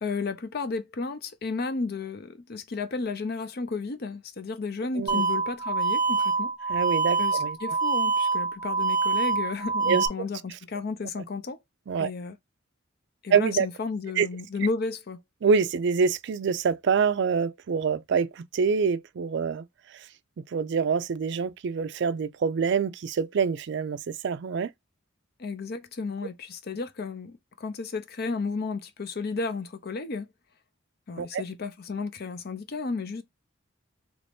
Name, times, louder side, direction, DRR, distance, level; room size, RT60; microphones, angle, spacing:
voice 1, 0.0-6.5 7.2-11.6 12.0-12.4 13.2-15.2 25.4-30.3 31.1-33.2, left 4 dB, 50° left, 0.5 m, -33 dB
sound 1, 5.1-10.1, right 4 dB, 20° right, 0.7 m, -26 dB
voice 2, 6.7-7.6 9.9-10.3 11.9-12.1 13.3-13.7 14.2-14.3 15.4-19.6 19.9-20.0 20.5-24.7 31.2-31.4, right 6 dB, 60° right, 0.4 m, -26 dB
3.0 x 2.6 x 3.3 m
head